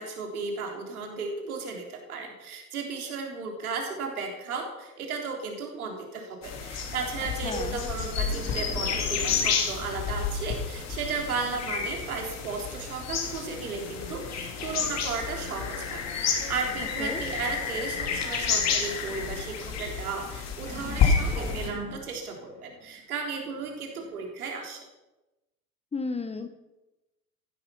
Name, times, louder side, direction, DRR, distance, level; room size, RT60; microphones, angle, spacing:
voice 1, 0.0-24.8, right 4 dB, 70° right, 2 dB, 3.7 m, -35 dB
sound 1, 6.4-21.7, left 6 dB, 35° left, 3.1 m, -30 dB
sound 2, 7.1-12.2 20.7-24.3, right 2 dB, 15° right, 5.7 m, -45 dB
voice 2, 7.4-7.8 17.0-17.2 25.9-26.5, left 3 dB, 15° left, 9 dB, 1.2 m, -33 dB
sound 3, 13.4-19.4, left 4 dB, 50° left, 3.8 m, -45 dB
16.0 x 11.5 x 5.7 m, 1.0 s
figure-of-eight pair, 80°, 45 cm